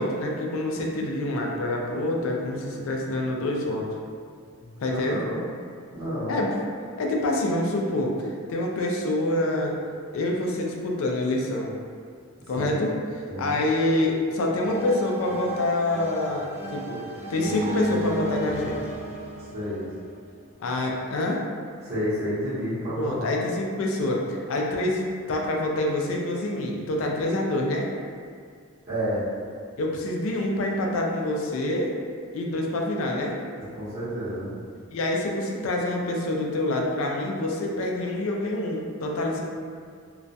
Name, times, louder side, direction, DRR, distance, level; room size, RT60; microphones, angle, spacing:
voice 1, 0.0-3.9 4.8-5.2 6.3-6.6 7.0-9.8 10.1-11.7 12.5-17.0 17.3-18.8 20.6-21.4 23.0-27.9 29.8-31.9 32.3-33.4 34.9-39.4, left 1 dB, 70° left, 0 dB, 0.4 m, -26 dB
voice 2, 4.9-5.4 5.9-6.4 12.5-12.8 13.3-13.5 19.5-19.8 21.8-23.3 28.9-29.3 33.7-34.5, equal, 45° right, -17 dB, 0.8 m, -30 dB
sound 1, 14.6-20.4, right 1 dB, 80° right, 0.8 m, -34 dB
2.3 x 2.1 x 2.6 m, 2.1 s
head